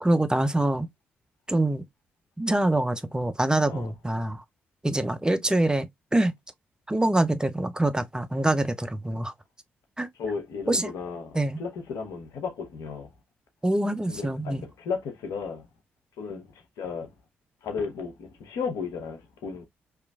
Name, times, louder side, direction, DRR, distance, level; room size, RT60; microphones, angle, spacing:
voice 1, 0.0-0.9 1.5-1.8 2.4-4.4 4.8-6.3 6.9-9.3 10.0-10.1 10.7-10.9 11.3-11.6 13.6-14.6, right 1 dB, 15° right, 0.4 m, -25 dB
voice 2, 10.2-13.1 14.1-15.7 16.2-16.5 16.8-17.1 17.6-19.7, left 5 dB, 70° left, 0.7 m, -34 dB
2.9 x 2.4 x 2.2 m
hypercardioid pair, 40°, 6 cm